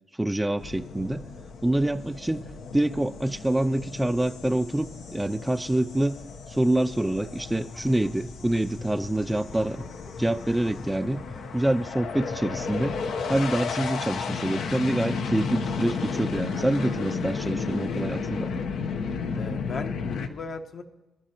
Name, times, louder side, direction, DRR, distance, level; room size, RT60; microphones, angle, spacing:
voice 1, 0.1-1.2 1.6-2.5 2.7-6.2 6.5-9.8 10.2-11.2 11.5-13.0 13.3-18.5, right 1 dB, 10° right, 11 dB, 0.3 m, -26 dB
sound 1, 0.6-20.3, left 5 dB, 70° left, 0.9 m, -33 dB
sound 2, 7.6-15.1, left 3 dB, 30° left, 0.8 m, -43 dB
voice 2, 19.4-20.8, left 4 dB, 55° left, 5 dB, 1.2 m, -37 dB
24.5 x 11.5 x 3.0 m, 1.0 s
cardioid pair, 90°, 0 cm